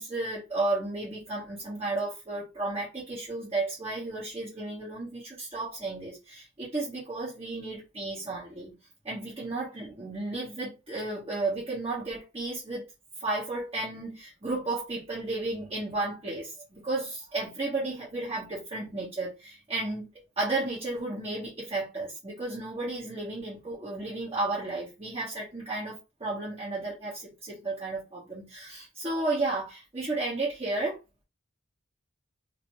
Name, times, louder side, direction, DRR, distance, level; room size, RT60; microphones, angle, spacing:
voice 1, 0.0-8.8 9.0-12.8 13.2-20.1 20.4-31.0, right 2 dB, 25° right, 1.2 m, -33 dB
2.9 x 2.7 x 3.0 m
head